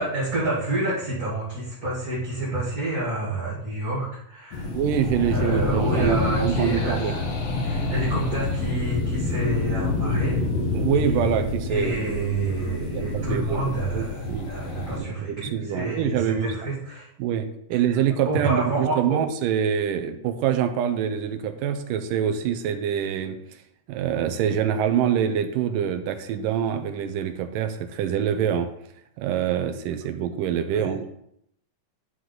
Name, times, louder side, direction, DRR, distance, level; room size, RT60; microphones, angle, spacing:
voice 1, 0.0-4.7 5.3-7.2 7.6-10.4 11.7-17.1 17.7-17.8 18.2-19.2 30.7-30.9, right 2 dB, 30° right, -9 dB, 2.4 m, -28 dB
sound 1, 4.5-15.0, left 3 dB, 60° left, 2.0 m, -27 dB
voice 2, 4.7-7.2 10.7-12.0 12.9-14.5 15.0-16.5 17.2-23.4 23.9-28.7 29.2-31.1, right 8 dB, 85° right, 8 dB, 2.3 m, -25 dB
11.0 x 4.7 x 3.9 m, 0.74 s
omnidirectional pair, 3.8 m